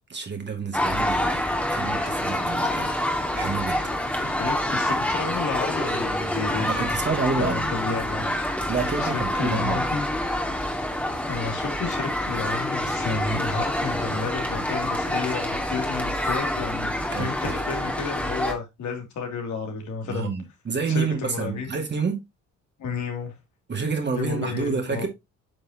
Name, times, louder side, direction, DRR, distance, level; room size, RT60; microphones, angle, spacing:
voice 1, 0.1-2.9 3.3-3.9 6.6-7.7 8.7-9.9 17.1-17.6 20.0-22.2 23.7-25.1, right 5 dB, 35° right, 2.4 m, -29 dB
sound 1, 0.7-18.5, left 1 dB, 5° left, 2.2 m, -27 dB
voice 2, 4.2-7.1 7.4-8.3 9.0-10.1 11.3-20.3 20.9-21.7 22.8-23.3 24.1-25.0, left 5 dB, 70° left, 2.9 m, -31 dB
9.0 x 5.4 x 2.9 m
cardioid pair, 90°, 30 cm